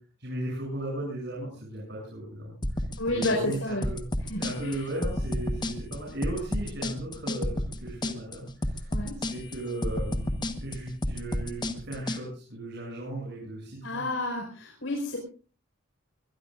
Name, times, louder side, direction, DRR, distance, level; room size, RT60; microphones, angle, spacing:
voice 1, 0.2-4.0 4.4-14.0, right 1 dB, 55° right, -3 dB, 7.9 m, -36 dB
sound 1, 2.6-12.2, left 1 dB, 20° left, 1.3 m, -31 dB
voice 2, 3.0-3.8 4.3-4.8 8.9-9.2 13.8-15.2, left 1 dB, 70° left, 0 dB, 5.1 m, -31 dB
23.0 x 21.0 x 2.6 m, 0.37 s
head